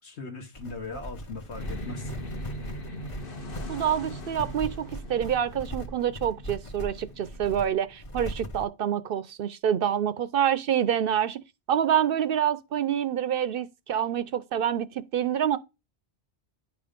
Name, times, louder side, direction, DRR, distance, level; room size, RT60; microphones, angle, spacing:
voice 1, 0.0-2.1, left 3 dB, 75° left, 1.5 m, -39 dB
sound 1, 0.5-8.6, equal, 30° left, 0.8 m, -39 dB
sound 2, 1.5-8.1, left 1 dB, 55° left, 1.3 m, -41 dB
voice 2, 3.7-11.4 11.7-15.6, right 9 dB, 60° right, 0.7 m, -27 dB
10.0 x 3.5 x 5.0 m
omnidirectional pair, 1.2 m